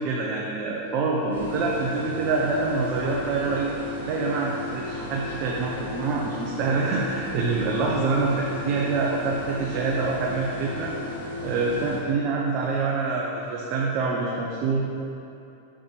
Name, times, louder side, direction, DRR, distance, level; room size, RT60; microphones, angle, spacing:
voice 1, 0.0-3.7 4.0-10.9 11.4-14.8, right 3 dB, 45° right, -2 dB, 0.7 m, -26 dB
sound 1, 1.3-12.0, left 2 dB, 90° left, 1.5 m, -35 dB
6.5 x 5.6 x 3.3 m, 2.7 s
hypercardioid pair, 100°, 0 cm